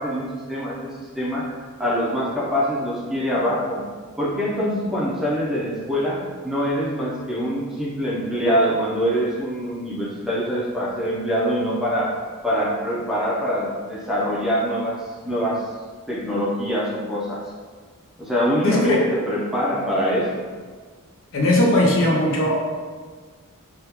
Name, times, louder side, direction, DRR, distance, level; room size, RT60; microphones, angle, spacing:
voice 1, 0.0-1.5 1.8-3.9 4.2-12.1 12.4-15.7 16.1-17.4 18.2-20.5, equal, ahead, -6 dB, 0.5 m, -24 dB
voice 2, 18.6-19.0 21.3-22.6, left 1 dB, 60° left, -2 dB, 0.6 m, -18 dB
3.5 x 2.3 x 2.9 m, 1.5 s
head